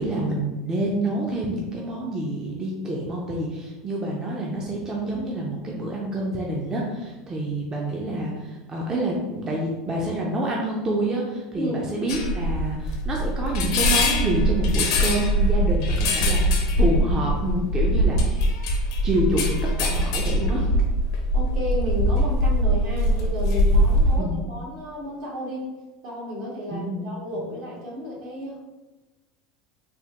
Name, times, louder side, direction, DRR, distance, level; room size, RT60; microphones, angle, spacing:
voice 1, 0.0-18.3 19.0-20.7 24.2-24.4 26.7-27.0 27.3-27.4, right 1 dB, 20° right, -2 dB, 0.4 m, -27 dB
sound 1, 12.1-24.2, equal, 75° left, 0.5 m, -22 dB
voice 2, 21.3-25.6 26.0-28.6, equal, 60° right, -3 dB, 1.1 m, -32 dB
3.4 x 2.1 x 2.8 m, 1.1 s
supercardioid pair, 125°, 3 cm